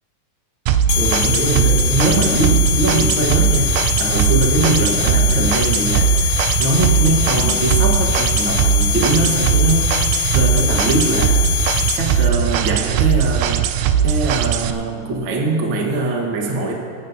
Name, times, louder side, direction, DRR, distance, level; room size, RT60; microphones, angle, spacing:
sound 1, 0.7-14.7, right 8 dB, 80° right, 1.8 m, -19 dB
sound 2, 0.9-12.3, left 18 dB, 85° left, 1.7 m, -23 dB
voice 1, 0.9-3.7 4.0-11.4 12.0-13.7 14.0-16.7, right 2 dB, 60° right, -1 dB, 1.3 m, -21 dB
26.0 x 10.5 x 2.7 m, 2.3 s
omnidirectional pair, 4.0 m